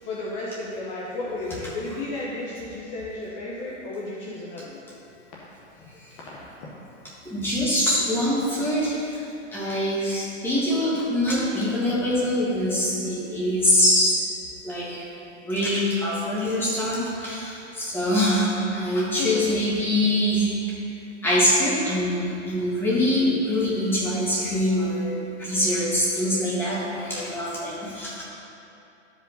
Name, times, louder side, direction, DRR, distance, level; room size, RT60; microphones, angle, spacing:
voice 1, 0.0-4.9 5.7-5.9 6.2-6.7 19.2-19.4, left 2 dB, 35° left, -5 dB, 1.1 m, -33 dB
voice 2, 7.3-9.2 9.5-14.2 14.6-15.0 15.5-20.5 21.2-28.2, left 1 dB, 5° left, -8 dB, 2.0 m, -24 dB
12.0 x 5.2 x 4.0 m, 2.8 s
hypercardioid pair, 140°, 35 cm